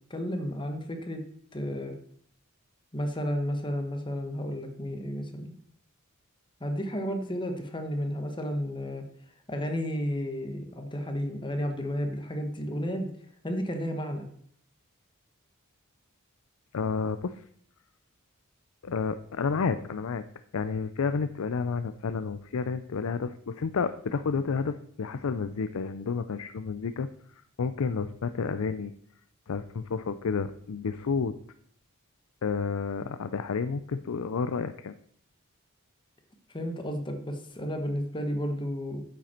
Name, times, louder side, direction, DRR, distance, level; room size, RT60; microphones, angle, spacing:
voice 1, 0.1-1.2 1.5-1.9 2.9-5.5 6.6-9.0 9.5-13.1 13.4-14.2 36.5-39.0, equal, 20° left, 5 dB, 1.3 m, -32 dB
voice 2, 16.7-17.4 18.8-20.2 20.5-27.1 27.6-28.9 29.5-31.4 32.4-34.9, left 5 dB, 75° left, 10 dB, 0.5 m, -30 dB
9.2 x 7.6 x 4.4 m, 0.64 s
head